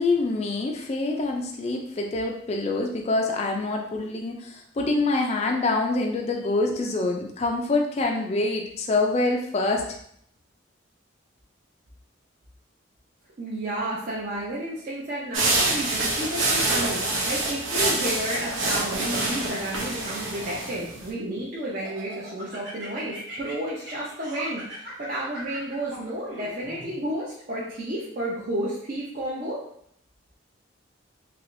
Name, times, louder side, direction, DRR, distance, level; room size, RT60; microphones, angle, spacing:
voice 1, 0.0-9.8, left 2 dB, 30° left, 2 dB, 0.3 m, -25 dB
voice 2, 13.4-29.6, right 1 dB, 45° right, -7 dB, 0.6 m, -31 dB
sound 1, 15.3-21.1, right 2 dB, 85° right, 0.8 m, -26 dB
Laughter, 18.4-19.7 20.3-21.4 21.8-26.9, right 1 dB, 60° right, 1.1 m, -41 dB
3.2 x 2.9 x 2.5 m, 0.68 s
head